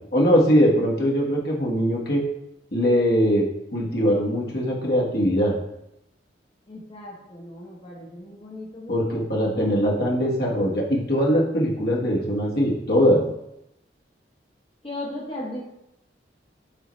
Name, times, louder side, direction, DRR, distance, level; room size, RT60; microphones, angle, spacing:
voice 1, 0.1-2.2 2.7-3.4 3.7-5.5 8.9-13.2, equal, 60° left, -3 dB, 1.5 m, -21 dB
voice 2, 6.7-9.2 14.8-15.6, left 1 dB, 30° left, -4 dB, 1.0 m, -36 dB
6.7 x 4.4 x 3.1 m, 0.84 s
head